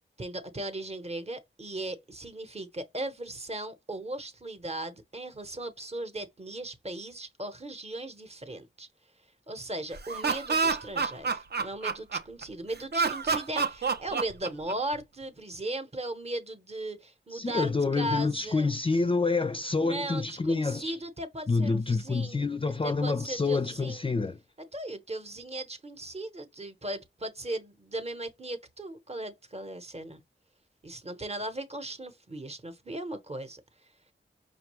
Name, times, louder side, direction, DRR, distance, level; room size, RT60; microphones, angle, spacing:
voice 1, 0.2-8.9 9.5-18.7 19.8-22.4 22.8-24.1 24.7-30.2 30.8-33.6, right 1 dB, 30° right, 0.9 m, -37 dB
Laughter, 9.9-12.4 12.9-15.0, right 4 dB, 55° right, 0.6 m, -28 dB
voice 2, 17.3-21.0 21.5-24.4, left 3 dB, 25° left, 0.4 m, -27 dB
5.3 x 2.2 x 3.0 m
wide cardioid pair, 85°, 20 cm